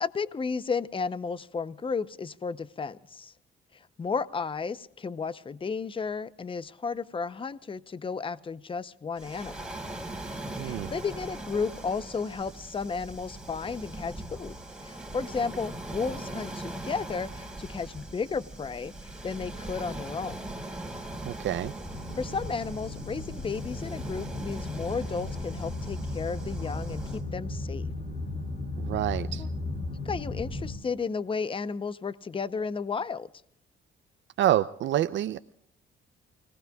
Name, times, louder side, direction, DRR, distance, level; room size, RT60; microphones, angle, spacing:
voice 1, 0.0-3.3 4.0-9.7 10.6-14.5 14.8-18.9 19.2-20.5 22.2-27.9 29.4-29.5 30.0-33.3, left 5 dB, 25° left, 16 dB, 0.7 m, -33 dB
Waves surf, 9.2-27.2, right 1 dB, 5° right, 4.3 m, -40 dB
voice 2, 10.6-10.9 21.2-21.7 28.8-29.4 34.4-35.4, right 12 dB, 70° right, 11 dB, 0.6 m, -27 dB
sound 1, 21.8-30.7, left 2 dB, 45° left, 6.9 m, -35 dB
29.5 x 18.5 x 2.3 m, 0.77 s
cardioid pair, 90°, 20 cm